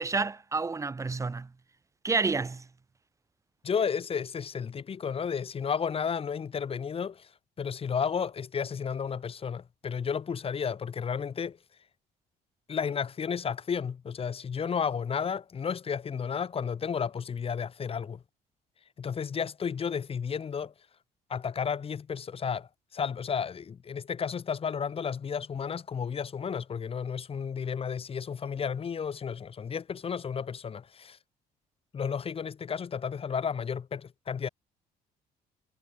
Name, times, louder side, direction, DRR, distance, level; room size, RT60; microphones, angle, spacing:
voice 1, 0.0-1.5 2.0-2.7, right 4 dB, 20° right, 1.0 m, -29 dB
voice 2, 3.6-7.3 7.6-11.6 12.7-18.2 19.0-20.7 21.3-31.2 31.9-34.5, left 6 dB, 35° left, 1.4 m, -32 dB
cardioid pair, 110°, 17 cm